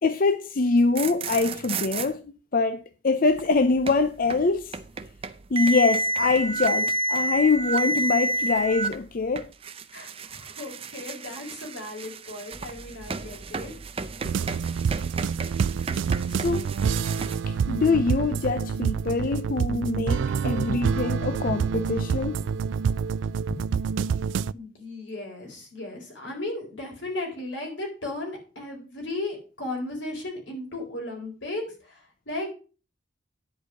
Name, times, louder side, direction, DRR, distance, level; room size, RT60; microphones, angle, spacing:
voice 1, 0.0-4.8 5.5-9.5 16.3-16.6 17.5-22.4, left 3 dB, 50° left, 0.5 m, -24 dB
sound 1, 0.8-2.1 3.3-17.4, right 2 dB, 30° right, 0.6 m, -31 dB
voice 2, 9.9-13.7 23.5-23.6 24.5-32.5, left 2 dB, 85° left, 4.3 m, -35 dB
sound 2, 14.2-24.5, right 6 dB, 85° right, 0.3 m, -27 dB
10.5 x 4.9 x 6.3 m
head